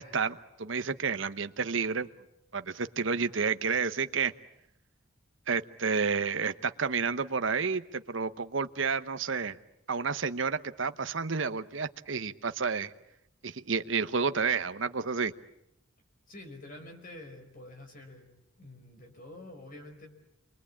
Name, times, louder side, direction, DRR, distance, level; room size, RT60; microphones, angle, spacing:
voice 1, 0.0-2.1 2.5-4.3 5.5-9.6 9.9-12.9 13.4-15.3, right 5 dB, 65° right, 11 dB, 1.0 m, -30 dB
voice 2, 16.3-18.3 18.6-20.1, left 1 dB, 45° left, 5 dB, 4.8 m, -47 dB
28.0 x 23.0 x 8.6 m, 0.82 s
head